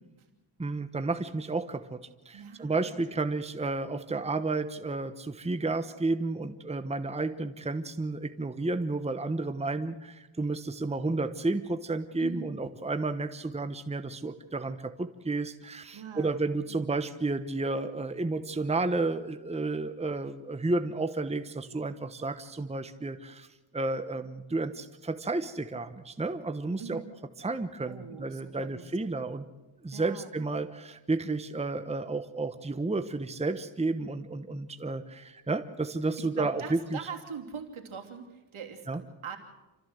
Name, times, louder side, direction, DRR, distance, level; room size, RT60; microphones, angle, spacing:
voice 1, 0.6-23.5 23.7-27.0 27.4-29.5 29.8-37.0 38.9-39.0, right 3 dB, 15° right, 9 dB, 1.0 m, -32 dB
voice 2, 2.3-3.2 4.1-4.3 12.2-12.5 15.9-16.8 26.8-27.1 27.9-29.1 29.9-30.3 36.2-39.4, right 6 dB, 75° right, 4 dB, 3.0 m, -43 dB
28.0 x 14.0 x 7.9 m, 1.1 s
cardioid pair, 80°, 49 cm